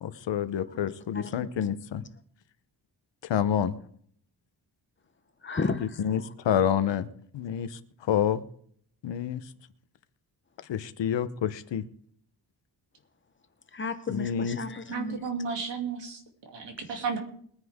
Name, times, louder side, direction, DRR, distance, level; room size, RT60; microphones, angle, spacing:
voice 1, 0.0-2.0 3.2-3.8 5.8-7.1 7.3-8.4 9.0-9.5 10.7-11.8 14.1-14.6, left 9 dB, 90° left, 13 dB, 0.9 m, -28 dB
voice 2, 1.1-1.5 5.4-5.9 13.7-15.2, left 4 dB, 30° left, 9 dB, 1.0 m, -32 dB
voice 3, 14.9-17.2, right 5 dB, 90° right, 2 dB, 2.9 m, -33 dB
21.5 x 9.8 x 3.6 m, 0.62 s
wide cardioid pair, 160°, 42 cm